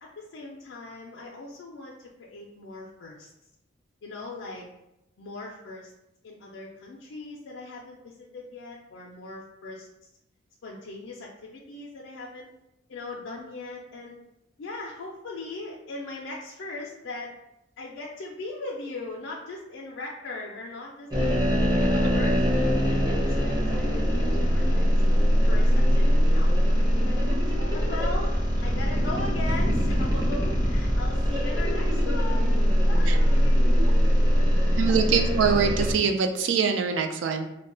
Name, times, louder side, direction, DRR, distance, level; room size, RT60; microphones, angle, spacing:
voice 1, 0.0-3.3 4.0-4.7 5.2-5.9 6.2-9.9 10.6-12.5 12.9-14.2 14.6-17.3 17.8-21.5 21.8-24.8 25.5-27.3 27.7-33.8, left 2 dB, 70° left, -3 dB, 0.4 m, -39 dB
sound 1, 21.1-35.9, equal, 20° right, 0.7 m, -22 dB
voice 2, 34.7-37.5, right 6 dB, 65° right, 5 dB, 0.3 m, -24 dB
2.2 x 2.0 x 3.7 m, 0.87 s
head